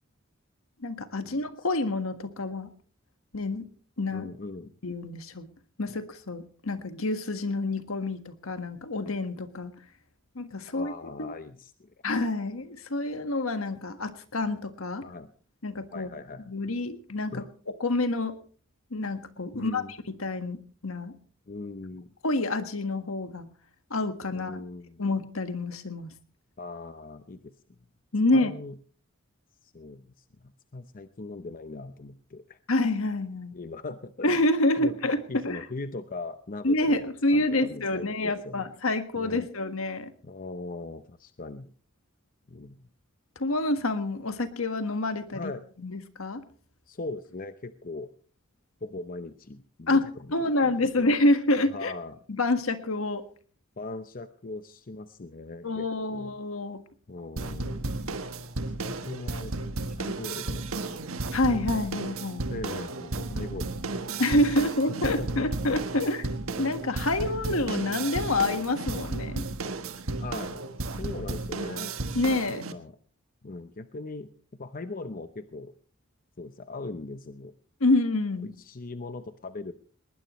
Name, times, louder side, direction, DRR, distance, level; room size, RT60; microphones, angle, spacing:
voice 1, 0.8-2.7 3.3-3.7 4.0-4.3 4.8-5.5 5.8-9.7 10.3-10.9 11.2-11.3 12.0-15.0 15.6-16.1 16.5-17.4 17.8-18.4 18.9-19.8 20.2-21.1 22.2-23.5 23.9-24.6 25.0-26.1 28.1-28.5 32.7-33.5 34.2-35.6 36.6-40.1 43.3-45.5 45.8-46.4 49.9-51.9 52.3-53.2 55.6-56.8 61.3-62.4 64.2-66.3 66.6-69.4 72.1-72.6 77.8-78.5, left 2 dB, 75° left, 9 dB, 1.6 m, -27 dB
voice 2, 4.1-4.7 10.7-11.9 15.0-15.3 15.9-16.5 17.3-17.5 19.5-19.9 21.5-22.1 24.3-25.0 26.6-27.5 28.3-28.8 29.6-32.6 33.5-34.3 34.8-34.9 35.3-38.7 39.1-39.5 40.2-41.7 42.5-42.9 45.3-45.6 46.9-48.1 48.8-50.4 50.6-51.1 51.7-52.2 53.8-56.3 57.1-58.0 58.8-60.7 62.5-64.2 64.6-64.7 65.0-65.5 70.2-72.0 72.5-73.0 73.4-75.7 76.4-77.5 78.4-79.7, left 3 dB, 40° left, 10 dB, 0.8 m, -40 dB
sound 1, 57.4-72.7, right 2 dB, 85° right, 1.4 m, -33 dB
20.0 x 19.5 x 3.1 m, 0.43 s
head